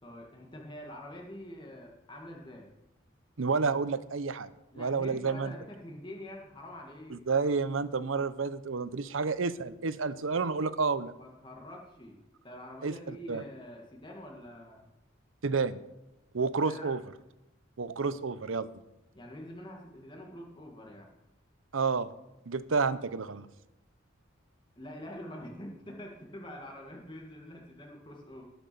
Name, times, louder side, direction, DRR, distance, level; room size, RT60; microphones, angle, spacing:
voice 1, 0.0-2.7 4.7-7.2 11.2-12.2 12.4-14.9 16.6-16.9 19.1-21.1 24.8-28.4, left 1 dB, 25° left, -1 dB, 1.9 m, -45 dB
voice 2, 3.4-4.5 4.8-5.5 7.1-11.1 12.8-13.4 15.4-15.8 16.3-17.0 17.8-18.7 21.7-22.1 22.5-23.5, right 4 dB, 80° right, 14 dB, 0.7 m, -30 dB
18.0 x 6.1 x 6.9 m, 0.94 s
head